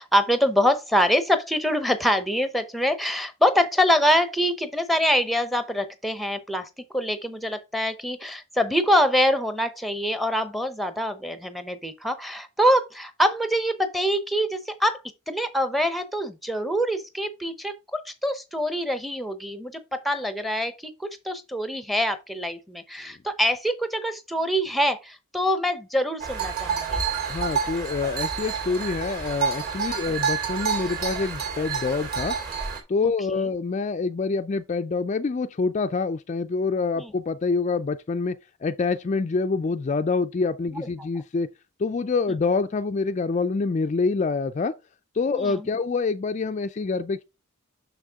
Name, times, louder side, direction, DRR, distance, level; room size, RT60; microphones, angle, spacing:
voice 1, 0.0-15.0 15.3-20.7 21.0-27.0 33.3-33.4 37.0-37.1 40.7-40.9 45.3-45.7, equal, ahead, 0.7 m, -25 dB
sound 1, 26.2-32.8, right 6 dB, 45° right, 2.6 m, -28 dB
voice 2, 27.3-32.4 32.9-41.5 41.8-44.7 45.1-47.2, left 4 dB, 35° left, 0.3 m, -26 dB
6.4 x 6.4 x 3.5 m
head